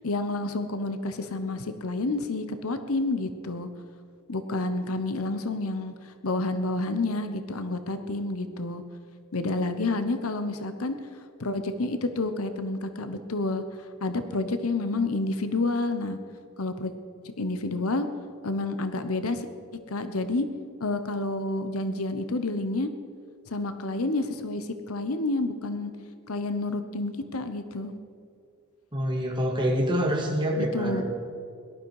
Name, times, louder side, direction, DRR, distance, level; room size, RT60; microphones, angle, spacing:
voice 1, 0.0-3.7 4.3-8.8 9.3-11.0 11.4-13.6 14.0-16.2 16.6-16.9 17.2-18.1 18.4-19.5 19.9-20.5 20.8-22.9 23.5-25.9 26.3-27.9 30.6-31.0, left 2 dB, 70° left, 9 dB, 0.9 m, -29 dB
voice 2, 28.9-31.0, equal, 20° right, 0 dB, 2.2 m, -26 dB
18.0 x 12.0 x 4.8 m, 2.5 s
head